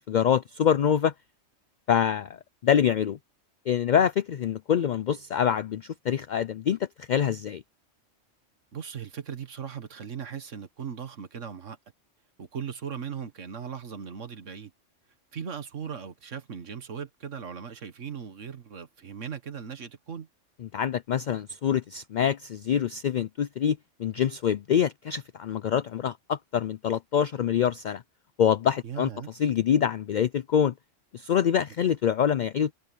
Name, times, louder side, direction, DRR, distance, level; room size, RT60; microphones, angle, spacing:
voice 1, 0.1-1.1 1.9-3.2 3.7-7.6 20.7-28.0 28.4-29.1 29.4-30.7 31.1-32.7, left 8 dB, 60° left, 0.5 m, -25 dB
voice 2, 8.7-11.8 12.4-14.7 15.3-20.3 28.8-29.3, right 7 dB, 85° right, 1.8 m, -38 dB
omnidirectional pair, 1.2 m